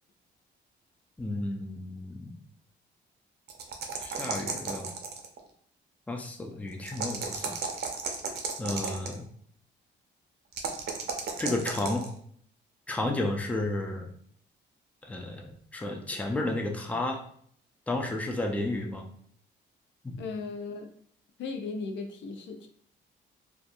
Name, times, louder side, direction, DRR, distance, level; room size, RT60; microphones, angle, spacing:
voice 1, 1.2-2.4 4.0-4.9 6.1-7.6 8.6-9.2 11.4-12.0 12.9-14.1 15.0-17.2 17.9-19.1 20.0-20.2, left 2 dB, 5° left, 2 dB, 0.4 m, -32 dB
sound 1, 3.5-5.4 6.8-9.2 10.5-12.1, right 5 dB, 55° right, 0.6 m, -34 dB
voice 2, 20.2-20.9 21.4-22.7, left 4 dB, 70° left, 5 dB, 0.5 m, -36 dB
2.6 x 2.3 x 2.5 m, 0.62 s
cardioid pair, 90°, 20 cm